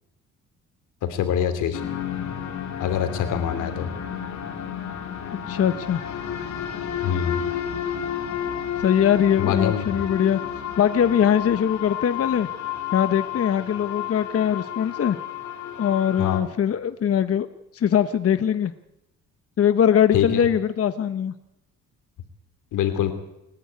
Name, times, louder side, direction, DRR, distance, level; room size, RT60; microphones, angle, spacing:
voice 1, 1.0-1.8 2.8-3.9 7.0-7.4 9.4-9.9 16.2-16.4 20.1-20.4 22.7-23.1, left 9 dB, 85° left, 8 dB, 3.2 m, -24 dB
sound 1, 1.7-16.4, left 9 dB, 65° left, 3.9 m, -31 dB
voice 2, 5.5-6.0 8.8-10.4 10.8-12.5 12.9-15.2 15.8-17.5 17.7-18.7 19.6-21.3, left 9 dB, 50° left, 10 dB, 1.1 m, -21 dB
28.5 x 11.0 x 9.6 m, 0.87 s
cardioid pair, 90°, 30 cm